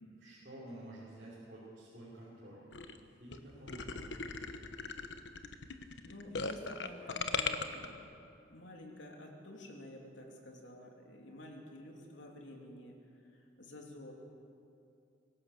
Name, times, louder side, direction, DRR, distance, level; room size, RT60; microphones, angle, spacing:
voice 1, 0.0-2.7 3.2-4.0, right 1 dB, 50° right, -10 dB, 5.4 m, -50 dB
sound 1, 2.7-3.0 3.3-3.4 3.7-7.9, left 5 dB, 70° left, 1.1 m, -38 dB
voice 2, 6.0-8.1 8.5-13.0 13.2-14.1, left 1 dB, 85° left, 1 dB, 3.3 m, -50 dB
24.5 x 16.5 x 6.9 m, 2.5 s
head